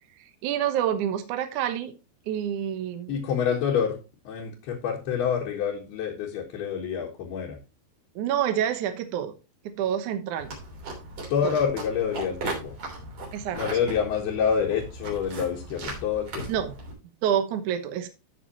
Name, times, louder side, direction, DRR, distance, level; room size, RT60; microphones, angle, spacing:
voice 1, 0.2-1.9 2.3-3.1 8.2-9.3 9.6-10.5 11.4-11.6 13.3-13.6 16.5-16.7 17.2-18.1, right 9 dB, 70° right, 7 dB, 2.1 m, -27 dB
voice 2, 3.1-4.0 4.3-7.6 11.3-12.8 13.5-16.5, left 7 dB, 75° left, -3 dB, 3.4 m, -27 dB
sound 1, 10.4-16.9, right 2 dB, 45° right, 4.4 m, -37 dB
14.0 x 6.0 x 2.9 m, 0.30 s
omnidirectional pair, 4.7 m